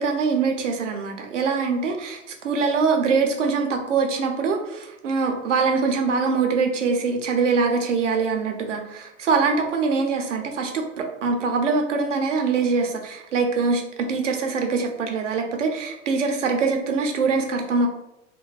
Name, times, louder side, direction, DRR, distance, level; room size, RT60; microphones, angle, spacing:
voice 1, 0.0-17.9, right 4 dB, 75° right, 3 dB, 0.6 m, -23 dB
2.5 x 2.1 x 3.1 m, 0.88 s
figure-of-eight pair, 95°, 37 cm